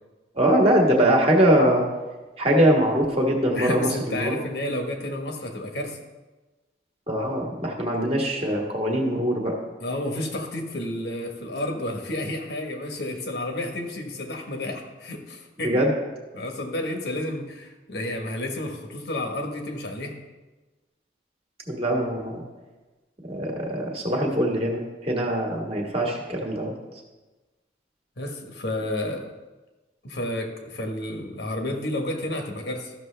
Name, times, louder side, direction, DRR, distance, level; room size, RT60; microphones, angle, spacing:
voice 1, 0.3-1.9 2.4-4.4 7.1-9.6 15.6-15.9 21.7-22.4 23.3-26.7, right 1 dB, 30° right, 0 dB, 1.5 m, -22 dB
voice 2, 3.5-6.0 9.8-15.8 16.3-20.2 28.2-29.3 30.0-32.9, left 1 dB, 65° left, 4 dB, 1.2 m, -31 dB
13.5 x 6.2 x 3.3 m, 1.2 s
head